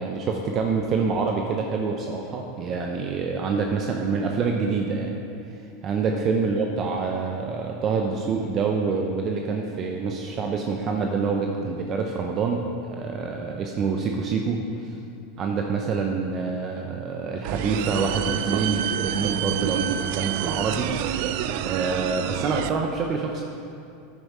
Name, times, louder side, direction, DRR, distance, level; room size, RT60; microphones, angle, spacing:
voice 1, 0.0-5.2 5.8-14.6 15.4-20.9 21.6-23.4, right 4 dB, 40° right, 2 dB, 0.9 m, -26 dB
sound 1, 17.4-22.7, right 11 dB, 60° right, 0.5 m, -28 dB
9.8 x 9.4 x 4.9 m, 2.6 s
hypercardioid pair, 90°, 0 cm